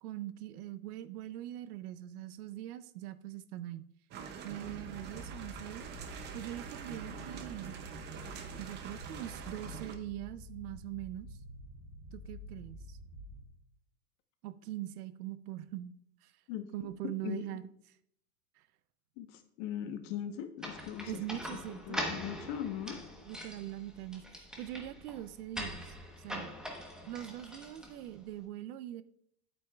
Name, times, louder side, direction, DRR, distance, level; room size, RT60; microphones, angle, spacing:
voice 1, 0.0-3.8 4.4-5.9 6.3-7.7 8.6-11.3 12.1-13.0 14.4-15.9 16.2-16.3 16.7-17.6 18.6-18.7 21.1-22.0 23.2-26.5 27.1-29.0, right 13 dB, 70° right, 14 dB, 0.7 m, -42 dB
sound 1, 4.1-10.0, right 7 dB, 25° right, 0.5 m, -45 dB
sound 2, 4.6-13.5, left 1 dB, 45° right, 2.5 m, -49 dB
voice 2, 19.2-21.2 21.5-23.0, left 10 dB, 50° left, 8 dB, 1.0 m, -40 dB
sound 3, 20.6-28.3, equal, ahead, 1.0 m, -43 dB
8.5 x 8.3 x 2.3 m, 0.69 s
supercardioid pair, 135°, 47 cm